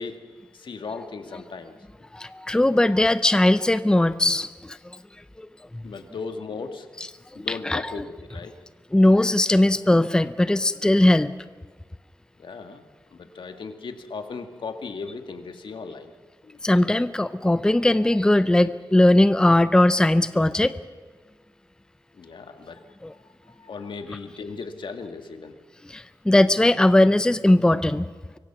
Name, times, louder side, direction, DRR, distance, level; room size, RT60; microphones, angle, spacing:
voice 1, 0.0-1.7 5.8-6.9 7.4-8.6 12.4-12.8 13.1-16.1 16.4-16.6 22.1-22.8 23.6-25.6, left 4 dB, 80° left, 6 dB, 2.0 m, -37 dB
voice 2, 2.1-4.8 5.7-5.8 7.3-7.9 8.9-11.3 16.6-20.7 23.0-23.1 25.9-28.0, left 1 dB, 10° left, 13 dB, 0.6 m, -19 dB
25.0 x 23.0 x 6.0 m, 1.5 s
wide cardioid pair, 150°, 8 cm